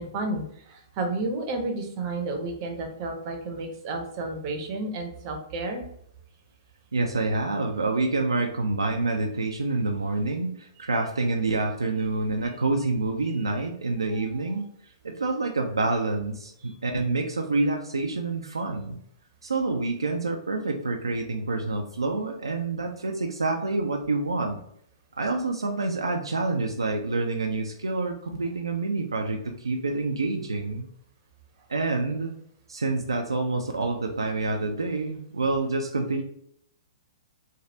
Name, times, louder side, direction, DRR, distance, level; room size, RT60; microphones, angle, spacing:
voice 1, 0.0-5.9 13.3-13.4 14.1-14.2 16.6-16.7, right 2 dB, 40° right, 4 dB, 0.7 m, -32 dB
voice 2, 6.9-14.7 15.0-19.0 19.4-24.6 25.2-30.8 31.7-32.3 32.7-36.2, right 3 dB, 80° right, 2 dB, 0.3 m, -27 dB
3.2 x 2.3 x 2.7 m, 0.70 s
figure-of-eight pair, 115°, 3 cm